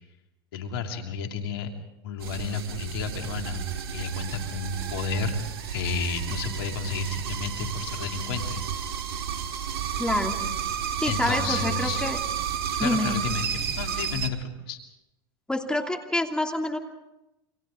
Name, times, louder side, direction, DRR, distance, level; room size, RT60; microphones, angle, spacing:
voice 1, 0.5-1.7 2.0-3.6 3.9-5.4 5.7-8.6 11.1-12.1 12.8-14.8, left 5 dB, 75° left, 3 dB, 2.8 m, -31 dB
sound 1, 2.2-14.3, right 8 dB, 85° right, 2.0 m, -32 dB
voice 2, 10.0-10.4 11.0-12.2 12.8-13.2 15.5-16.8, left 1 dB, 5° left, 3 dB, 2.8 m, -27 dB
29.5 x 26.0 x 3.8 m, 0.91 s
hypercardioid pair, 100°, 12 cm